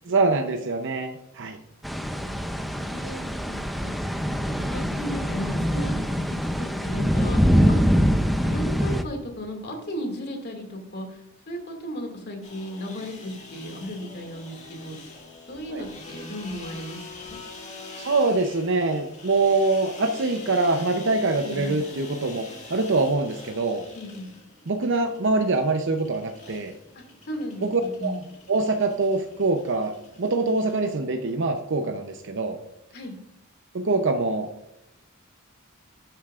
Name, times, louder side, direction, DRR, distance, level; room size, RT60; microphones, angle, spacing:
voice 1, 0.1-1.6 15.7-15.8 18.0-23.9 24.7-26.7 27.6-28.1 28.5-29.9 30.2-32.6 33.7-34.5, right 3 dB, 60° right, 6 dB, 0.7 m, -24 dB
sound 1, 1.8-9.0, equal, ahead, 0.5 m, -24 dB
voice 2, 2.8-3.9 4.5-7.8 8.0-15.1 15.5-17.4 21.4-21.8 23.9-24.3 26.9-28.2 32.9-33.2, equal, 50° left, 3 dB, 2.2 m, -36 dB
sound 2, 12.4-30.9, left 3 dB, 35° left, 1.9 m, -45 dB
11.5 x 9.0 x 2.4 m, 0.90 s
head